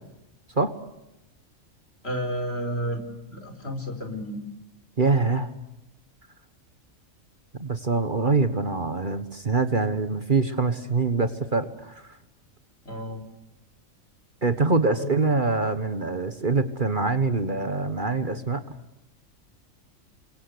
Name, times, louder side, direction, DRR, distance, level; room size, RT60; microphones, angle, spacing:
voice 1, 2.0-3.0 3.3-4.4 12.9-13.2 15.0-15.1, equal, 50° left, 7 dB, 4.7 m, -31 dB
voice 2, 5.0-5.5 7.6-12.0 14.4-18.6, right 3 dB, 40° right, 10 dB, 1.5 m, -24 dB
29.0 x 24.0 x 8.1 m, 0.91 s
omnidirectional pair, 1.4 m